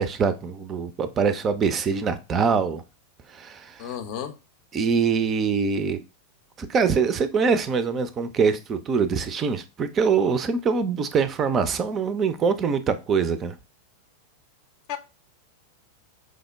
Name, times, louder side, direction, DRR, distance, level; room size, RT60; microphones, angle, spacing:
voice 1, 0.0-2.8 3.3-3.9 4.7-6.0 6.6-13.6, right 5 dB, 25° right, 0.4 m, -24 dB
voice 2, 3.8-4.4 14.9-15.0, left 9 dB, 45° left, 0.5 m, -32 dB
4.9 x 2.1 x 3.4 m
figure-of-eight pair, 90°, 0 cm